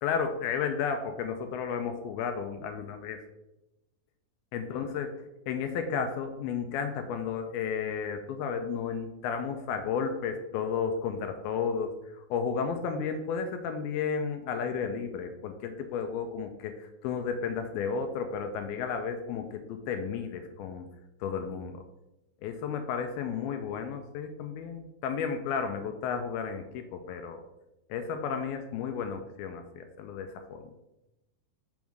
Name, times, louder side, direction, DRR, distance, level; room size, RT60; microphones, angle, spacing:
voice 1, 0.0-3.2 4.5-5.1 5.5-20.9 21.2-21.8 22.4-27.4 27.9-30.7, left 6 dB, 85° left, 6 dB, 2.2 m, -33 dB
6.2 x 3.6 x 6.0 m, 0.92 s
omnidirectional pair, 4.9 m